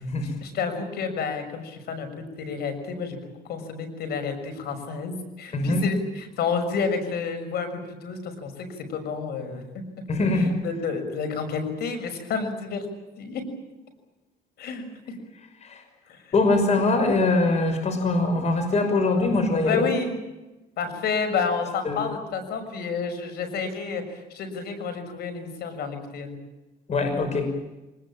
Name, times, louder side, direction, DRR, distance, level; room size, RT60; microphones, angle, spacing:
voice 1, 0.4-3.2 3.4-9.6 10.6-12.8 13.2-13.4 14.6-14.8 16.1-16.2 19.7-20.1 20.8-26.4, left 5 dB, 70° left, 7 dB, 6.4 m, -30 dB
voice 2, 5.5-5.8 10.1-10.6 15.6-15.8 16.3-19.8 21.8-22.2 26.9-27.5, left 2 dB, 40° left, 6 dB, 6.1 m, -23 dB
24.5 x 20.5 x 8.9 m, 1.1 s
cardioid pair, 110°, 17 cm